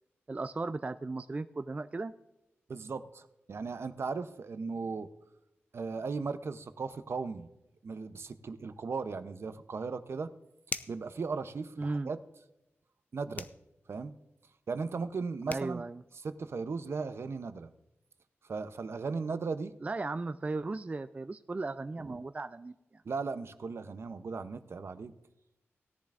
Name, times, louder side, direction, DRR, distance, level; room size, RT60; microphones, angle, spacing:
voice 1, 0.3-2.1 11.8-12.1 15.5-16.0 19.8-23.0, right 3 dB, 30° right, 10 dB, 0.3 m, -36 dB
voice 2, 2.7-5.1 5.7-7.5 7.8-10.3 10.9-12.2 13.1-13.5 13.9-14.1 14.7-15.8 16.2-17.7 18.4-19.7 22.0-22.2 23.0-25.1, right 4 dB, 65° right, 11 dB, 0.7 m, -37 dB
sound 1, 10.6-11.1 13.3-13.6 15.2-15.3 15.5-15.7, left 3 dB, 40° left, 0.5 m, -38 dB
17.5 x 10.5 x 2.5 m, 0.93 s
wide cardioid pair, 90°, 5 cm